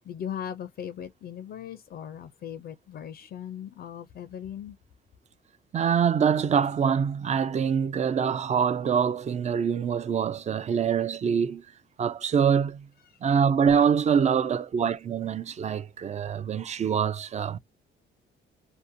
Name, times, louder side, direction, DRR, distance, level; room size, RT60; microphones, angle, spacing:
voice 1, 0.0-4.8 13.0-13.2, left 9 dB, 55° left, 0.4 m, -38 dB
voice 2, 5.7-11.7 12.0-12.9 13.2-17.6, right 7 dB, 35° right, 0.4 m, -25 dB
2.6 x 2.1 x 2.5 m
cardioid pair, 90°, 20 cm